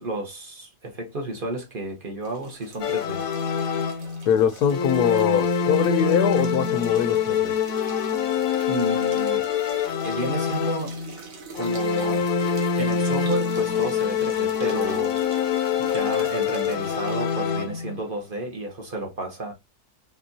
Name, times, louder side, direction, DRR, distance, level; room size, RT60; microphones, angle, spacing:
voice 1, 0.0-3.3 8.7-9.4 10.0-10.9 11.5-12.3 12.7-15.4 15.8-19.5, right 1 dB, 40° right, 1.0 m, -31 dB
sound 1, 2.2-17.3, right 5 dB, 65° right, 1.4 m, -44 dB
sound 2, 2.8-4.3 4.7-11.1 11.6-18.0, left 7 dB, 70° left, 1.0 m, -25 dB
voice 2, 4.3-7.5, left 9 dB, 85° left, 1.2 m, -22 dB
4.4 x 3.5 x 2.7 m
omnidirectional pair, 1.6 m